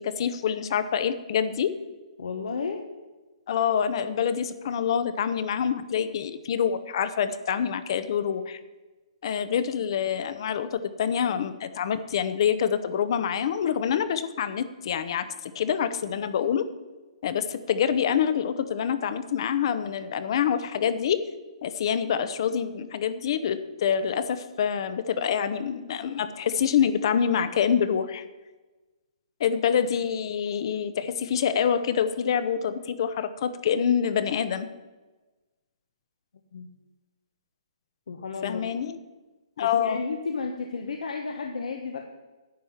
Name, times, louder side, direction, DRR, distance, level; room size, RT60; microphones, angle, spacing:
voice 1, 0.0-1.7 3.5-8.6 9.2-15.2 15.5-16.6 17.2-21.2 21.6-28.2 29.4-34.7 38.4-39.0 39.6-40.0, left 8 dB, 45° left, 13 dB, 0.8 m, -26 dB
voice 2, 2.2-2.8 36.5-36.7 38.1-38.6 39.6-42.0, left 4 dB, 80° left, 4 dB, 1.2 m, -32 dB
10.5 x 8.2 x 5.8 m, 1.2 s
hypercardioid pair, 165°, 4 cm